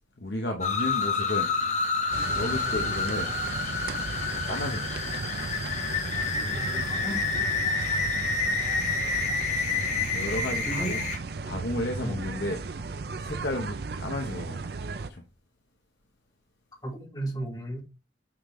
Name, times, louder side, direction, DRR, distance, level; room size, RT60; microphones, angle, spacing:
voice 1, 0.2-1.5 2.3-3.3 4.4-4.9 8.1-8.3 10.1-11.0 11.4-12.6 13.2-14.6 15.0-15.2, left 1 dB, 65° left, 1.0 m, -32 dB
sound 1, 0.6-11.2, left 4 dB, 40° left, 1.1 m, -29 dB
sound 2, 2.1-15.1, right 4 dB, 55° right, 0.5 m, -35 dB
voice 2, 6.4-7.2 10.6-11.0 12.0-12.2 16.8-17.8, right 1 dB, 20° left, 1.8 m, -35 dB
8.6 x 3.9 x 3.2 m
head